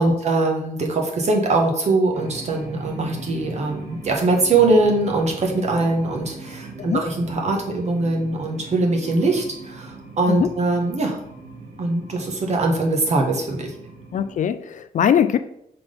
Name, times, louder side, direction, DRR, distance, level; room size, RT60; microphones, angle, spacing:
voice 1, 0.0-11.2 11.8-13.7, right 2 dB, 45° right, 1 dB, 1.3 m, -22 dB
sound 1, 2.1-14.3, right 3 dB, 85° right, 2.3 m, -39 dB
voice 2, 14.1-15.4, left 9 dB, 55° left, 12 dB, 0.4 m, -21 dB
5.7 x 3.9 x 5.3 m, 0.76 s
wide cardioid pair, 175°, 16 cm